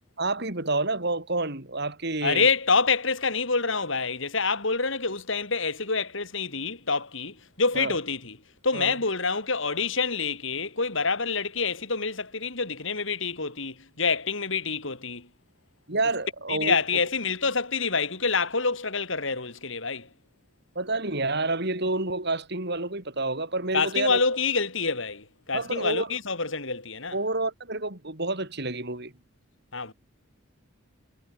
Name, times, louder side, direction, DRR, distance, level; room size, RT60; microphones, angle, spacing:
voice 1, 0.2-2.5 7.7-8.0 8.7-8.9 15.9-16.8 20.7-24.2 25.5-26.1 27.1-29.1, right 2 dB, 50° right, 4.6 m, -29 dB
voice 2, 2.2-8.4 8.6-15.3 16.5-20.1 23.7-27.2 29.7-29.9, left 4 dB, 65° left, 3.8 m, -27 dB
head